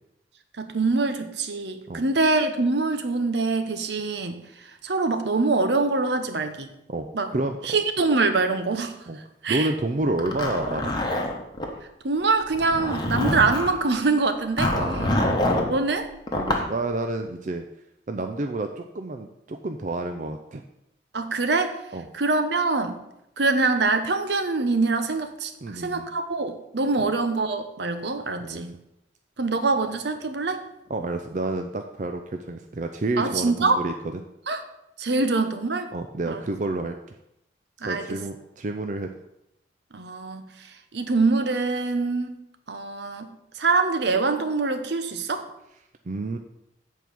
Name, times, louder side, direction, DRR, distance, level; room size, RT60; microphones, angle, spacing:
voice 1, 0.6-4.4 4.8-6.7 7.1-7.3 7.6-8.9 9.4-9.7 12.0-14.7 15.7-16.1 21.1-21.8 22.1-23.0 23.4-28.7 29.4-30.6 33.2-33.8 34.5-34.6 35.0-35.9 36.3-36.4 37.8-38.1 39.9-40.5 40.9-42.4 42.7-43.3 43.5-45.4, right 3 dB, 70° right, 7 dB, 0.9 m, -24 dB
voice 2, 7.3-7.8 9.1-9.2 9.5-10.9 14.7-15.4 16.3-17.6 18.1-20.6 21.9-22.1 25.6-26.1 28.4-28.6 30.9-33.9 35.9-37.0 37.8-39.1 46.1-46.4, right 2 dB, 45° right, 5 dB, 0.5 m, -29 dB
Zipper (clothing), 10.2-11.7 12.5-13.8 14.6-15.7 16.3-16.7, left 1 dB, 25° left, 1.1 m, -25 dB
8.0 x 4.6 x 6.9 m, 0.83 s
head